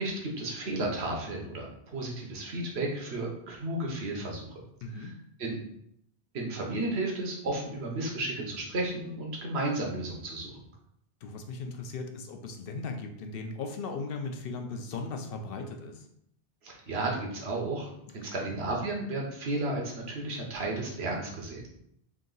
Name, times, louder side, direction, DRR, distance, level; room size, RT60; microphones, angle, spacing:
voice 1, 0.0-4.5 4.9-5.1 5.4-5.6 6.3-10.5 16.6-17.9 18.1-21.7, right 2 dB, 80° right, 0 dB, 1.2 m, -33 dB
voice 2, 4.8-5.1 11.2-16.1 18.2-18.5, left 3 dB, 70° left, 4 dB, 0.7 m, -38 dB
3.6 x 2.8 x 3.8 m, 0.73 s
omnidirectional pair, 1.1 m